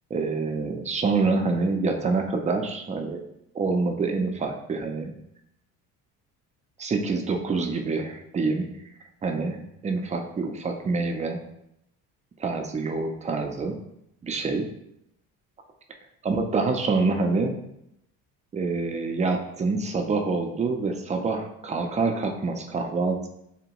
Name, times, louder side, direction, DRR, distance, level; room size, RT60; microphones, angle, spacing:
voice 1, 0.1-3.2 3.5-5.1 6.8-8.7 9.2-11.4 12.4-13.7 14.2-14.7 16.2-17.5 18.5-23.3, right 3 dB, 20° right, 4 dB, 0.4 m, -26 dB
2.8 x 2.2 x 2.9 m, 0.79 s
supercardioid pair, 75°, 35 cm